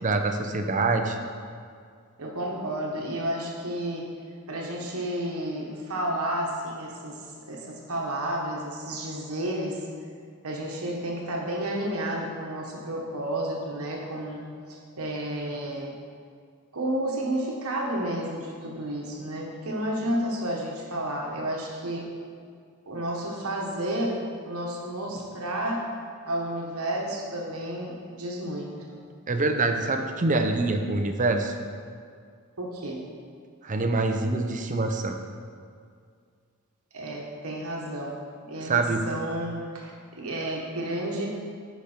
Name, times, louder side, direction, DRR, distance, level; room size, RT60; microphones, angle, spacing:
voice 1, 0.0-1.2 29.3-31.5 33.6-35.2 38.6-39.0, right 3 dB, 35° right, 5 dB, 0.6 m, -25 dB
voice 2, 2.2-4.0 4.5-7.2 7.5-9.8 10.4-14.4 14.7-15.9 16.7-22.1 22.9-25.9 26.3-29.0 32.6-33.1 36.9-38.2 38.5-39.9 40.2-41.3, right 1 dB, 75° right, -1 dB, 1.2 m, -31 dB
10.5 x 5.2 x 4.4 m, 2.2 s
head